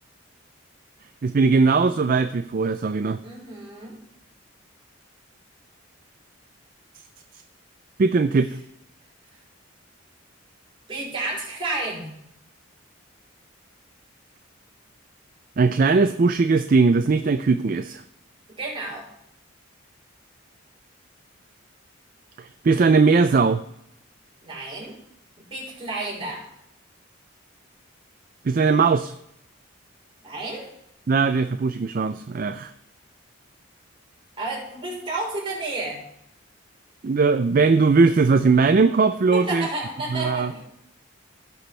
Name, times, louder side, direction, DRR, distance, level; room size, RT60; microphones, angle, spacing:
voice 1, 1.2-3.2 8.0-8.6 15.6-18.0 22.4-23.6 28.4-29.1 31.1-32.7 37.0-39.7 40.1-40.5, right 4 dB, 40° right, 10 dB, 0.4 m, -19 dB
voice 2, 3.2-4.0 10.9-12.1 18.5-19.1 24.4-25.0 25.5-26.5 30.2-30.7 34.4-36.0 39.3-40.6, right 2 dB, 25° right, -5 dB, 4.3 m, -31 dB
16.5 x 6.1 x 3.3 m, 0.77 s
head